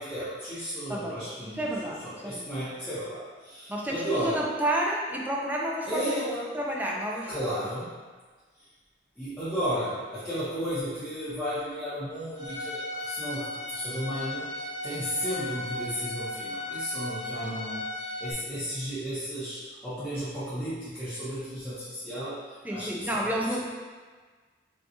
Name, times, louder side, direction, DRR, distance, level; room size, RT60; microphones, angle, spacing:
voice 1, 0.0-1.6 2.0-4.4 5.9-6.5 7.3-7.9 9.2-23.3, equal, 5° left, -15 dB, 0.9 m, -34 dB
voice 2, 0.9-2.5 3.7-6.2 6.5-7.3 22.6-23.6, right 1 dB, 10° right, -3 dB, 0.4 m, -30 dB
Bowed string instrument, 12.4-18.3, left 2 dB, 40° right, 0.8 m, -36 dB
5.2 x 2.3 x 2.8 m, 1.4 s
head